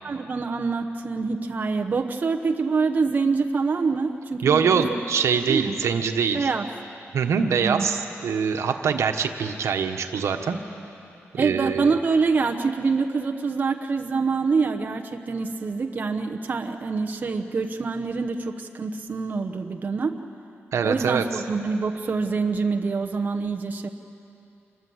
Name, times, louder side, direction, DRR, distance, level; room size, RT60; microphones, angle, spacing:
voice 1, 0.0-5.0 5.5-5.7 6.3-6.7 7.6-7.9 11.4-20.2 20.8-23.9, right 4 dB, 35° right, 4 dB, 1.0 m, -25 dB
voice 2, 4.4-6.5 7.1-10.6 11.3-11.9 20.7-21.4, right 6 dB, 85° right, 5 dB, 1.4 m, -24 dB
27.0 x 21.0 x 8.0 m, 2.8 s
wide cardioid pair, 175°, 5 cm